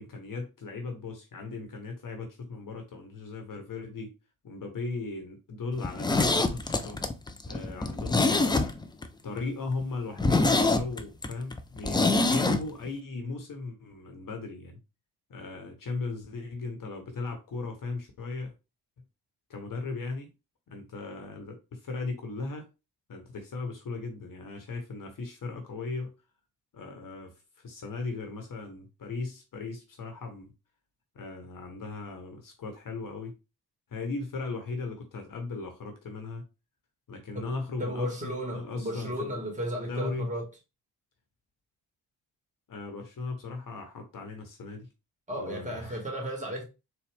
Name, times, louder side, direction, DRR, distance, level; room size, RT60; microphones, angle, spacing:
voice 1, 0.0-4.2 4.4-7.1 7.5-8.7 9.2-14.8 15.3-18.5 19.5-20.3 20.7-22.7 23.1-26.1 26.7-30.5 31.1-33.4 33.9-36.4 37.1-39.3 39.8-40.3 42.7-44.9 45.4-46.1, left 3 dB, 45° left, 1.1 m, -37 dB
Zipper (clothing), 5.8-9.1 9.4-9.5 9.8-9.9 10.2-12.6 12.9-13.0, left 3 dB, 10° left, 0.5 m, -25 dB
voice 2, 37.8-40.5 45.3-46.6, equal, 15° right, 1.9 m, -34 dB
4.1 x 2.3 x 3.5 m
hypercardioid pair, 40°, 48 cm